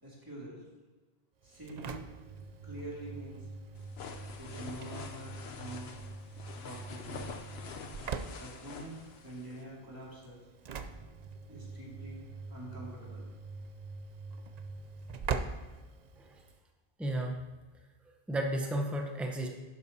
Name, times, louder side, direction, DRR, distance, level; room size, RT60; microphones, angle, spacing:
voice 1, 0.0-0.6 1.4-2.0 2.6-3.4 4.4-5.9 6.6-7.2 8.4-10.4 11.5-13.2, right 1 dB, 20° right, -5 dB, 2.5 m, -46 dB
Engine / Slam, 1.4-16.6, right 5 dB, 50° right, 0.5 m, -43 dB
sound 1, 3.8-9.6, left 5 dB, 75° left, 1.0 m, -46 dB
voice 2, 17.0-17.4 18.3-19.5, right 1 dB, ahead, 2 dB, 0.8 m, -33 dB
12.0 x 9.5 x 2.8 m, 1.2 s
omnidirectional pair, 1.1 m